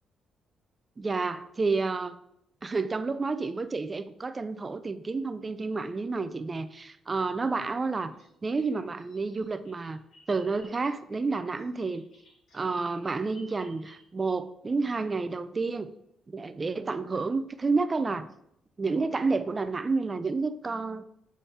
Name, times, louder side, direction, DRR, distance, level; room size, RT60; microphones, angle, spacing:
voice 1, 1.0-2.2 2.6-8.1 8.4-10.0 10.3-12.1 12.5-15.9 16.3-18.3 18.8-21.0, right 4 dB, 30° right, 12 dB, 0.4 m, -30 dB
Bird vocalization bird call bird song, 7.8-14.4, equal, 60° left, 2.1 m, -59 dB
7.0 x 3.6 x 4.2 m, 0.76 s
cardioid pair, 90°, 0 cm